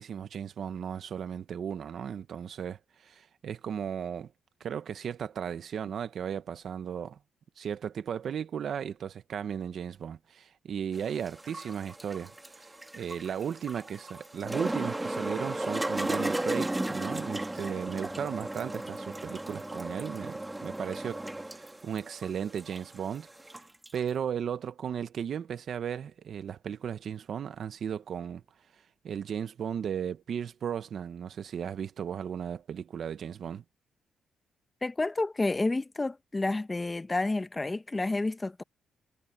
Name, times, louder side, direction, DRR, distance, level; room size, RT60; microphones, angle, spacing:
voice 1, 0.0-4.3 4.6-7.2 7.6-12.3 12.6-23.3 23.9-28.4 29.0-33.6, right 8 dB, 60° right, 1.2 m, -36 dB
sound 1, 11.0-24.0, right 1 dB, 15° right, 1.6 m, -35 dB
voice 2, 34.8-38.6, left 2 dB, 20° left, 1.2 m, -30 dB
cardioid pair, 100°, 0 cm